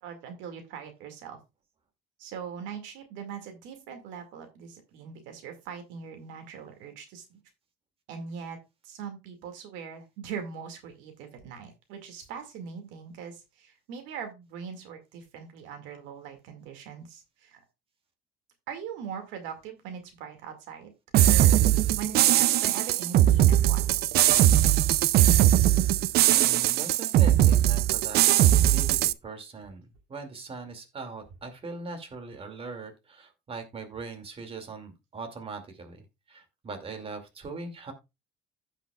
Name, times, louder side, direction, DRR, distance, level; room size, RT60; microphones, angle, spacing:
voice 1, 0.0-1.4 2.2-7.4 8.1-8.6 8.8-17.6 18.7-20.9 21.2-21.7 22.0-24.6, right 7 dB, 90° right, 6 dB, 2.1 m, -41 dB
sound 1, 21.1-29.1, right 13 dB, 60° right, 0.5 m, -20 dB
voice 2, 26.3-28.2 28.7-37.9, right 4 dB, 30° right, 5 dB, 2.4 m, -40 dB
15.5 x 5.8 x 2.3 m, 0.24 s
cardioid pair, 120°, 19 cm